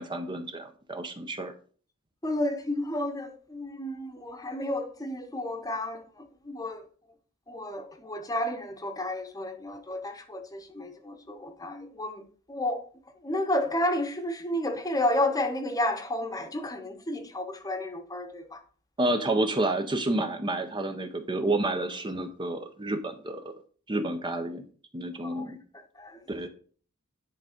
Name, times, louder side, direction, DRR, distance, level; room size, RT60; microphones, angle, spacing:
voice 1, 0.0-1.5 19.0-23.4 23.9-24.7 24.9-25.6 26.3-26.5, right 2 dB, 25° right, 0.6 m, -29 dB
voice 2, 2.2-6.9 7.5-12.2 12.5-12.8 13.2-18.6 25.2-25.5 25.9-26.2, left 1 dB, 15° left, 0.9 m, -31 dB
10.0 x 3.5 x 5.0 m
head